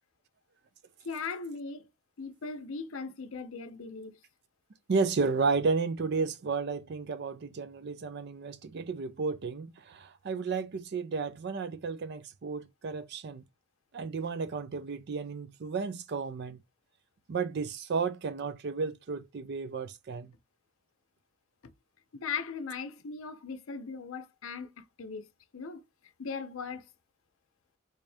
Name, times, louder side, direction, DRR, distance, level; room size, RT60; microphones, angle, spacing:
voice 1, 1.0-1.9 2.2-4.2 21.6-21.7 22.1-25.3 25.5-25.8 26.2-26.8, left 5 dB, 75° left, 0.6 m, -38 dB
voice 2, 4.9-13.4 13.9-16.6 17.3-20.3, right 4 dB, 50° right, 0.4 m, -32 dB
3.5 x 2.7 x 3.3 m
head